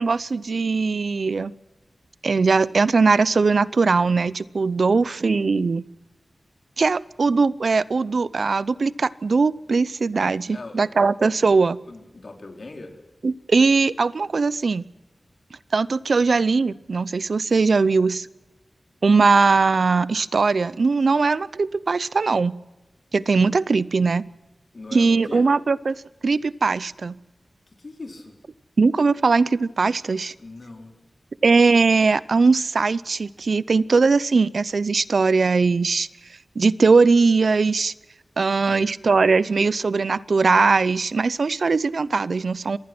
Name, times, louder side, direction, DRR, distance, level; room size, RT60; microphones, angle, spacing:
voice 1, 0.0-1.5 2.2-5.9 6.8-11.8 13.2-14.9 15.7-18.3 19.0-22.5 23.1-24.2 24.9-25.9 26.2-27.2 28.8-30.3 31.4-36.1 36.6-37.9 38.4-42.8, right 4 dB, 75° right, 19 dB, 0.6 m, -20 dB
voice 2, 10.5-11.1 11.8-13.0 16.2-16.4 24.7-25.4 27.8-28.4 30.4-30.9 38.7-38.9, left 3 dB, 60° left, 3 dB, 4.0 m, -40 dB
25.5 x 19.5 x 6.1 m, 1.1 s
wide cardioid pair, 60°, 0 cm